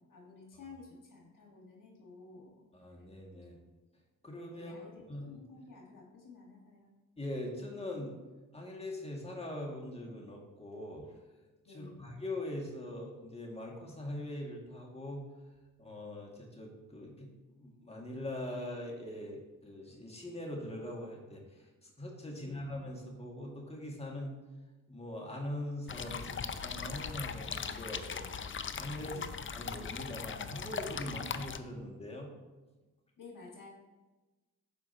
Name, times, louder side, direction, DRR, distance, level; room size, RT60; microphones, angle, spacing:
voice 1, 0.0-2.7 3.5-3.6 4.5-6.9 11.7-12.1 22.3-22.7 29.0-29.4 33.2-33.7, left 3 dB, 60° left, -1 dB, 1.8 m, -53 dB
voice 2, 2.7-3.6 4.2-5.4 7.2-8.1 8.5-11.1 11.7-15.2 15.8-17.3 17.6-21.4 21.8-24.4 24.9-28.2 28.8-29.2 29.5-32.3, left 1 dB, 15° left, -2 dB, 2.1 m, -42 dB
sound 1, 25.9-31.6, left 6 dB, 35° left, 0.5 m, -39 dB
12.5 x 4.9 x 2.9 m, 1.2 s
cardioid pair, 55°, 36 cm